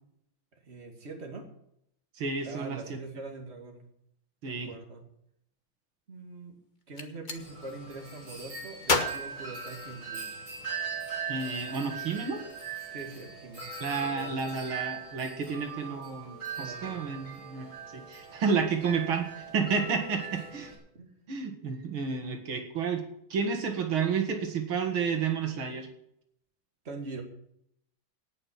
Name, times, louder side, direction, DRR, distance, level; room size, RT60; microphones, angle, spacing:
voice 1, 0.5-1.5 2.4-3.9 4.5-5.0 6.1-6.5 6.9-10.4 12.9-13.7 14.0-14.5 16.6-17.0 20.3-20.4 20.9-21.1 26.8-27.2, right 3 dB, 30° right, 3 dB, 2.6 m, -43 dB
voice 2, 2.2-2.8 4.4-4.7 11.3-12.4 13.8-17.7 17.9-20.7 21.3-23.0 23.3-25.9, right 5 dB, 85° right, 4 dB, 2.7 m, -31 dB
Gunshot gunfire, 6.8-7.4 8.8-10.3, left 3 dB, 25° left, 1.2 m, -31 dB
Wind chime, 7.3-20.8, right 6 dB, 60° right, 5.4 m, -40 dB
18.0 x 6.1 x 8.7 m, 0.75 s
omnidirectional pair, 2.2 m